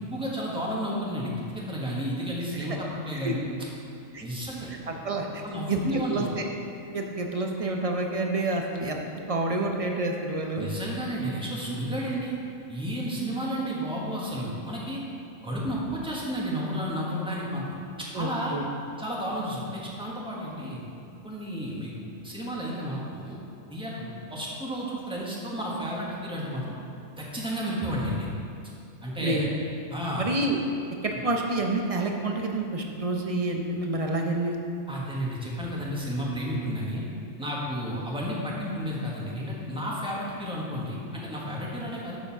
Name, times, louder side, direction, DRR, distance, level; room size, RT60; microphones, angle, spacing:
voice 1, 0.0-3.4 4.2-4.7 5.4-6.3 10.6-12.3 12.7-15.0 15.4-18.6 19.0-20.8 21.2-21.9 22.2-23.4 23.7-26.7 27.2-28.3 29.0-29.5 29.9-30.3 31.1-31.2 34.9-37.0 37.4-42.2, equal, 5° right, -5 dB, 1.4 m, -32 dB
voice 2, 4.9-5.4 5.7-6.5 6.9-9.0 9.3-10.7 18.1-18.7 29.2-29.5 30.2-30.6 31.0-34.6, right 2 dB, 35° right, 2 dB, 0.6 m, -28 dB
7.2 x 6.5 x 5.9 m, 2.5 s
omnidirectional pair, 1.4 m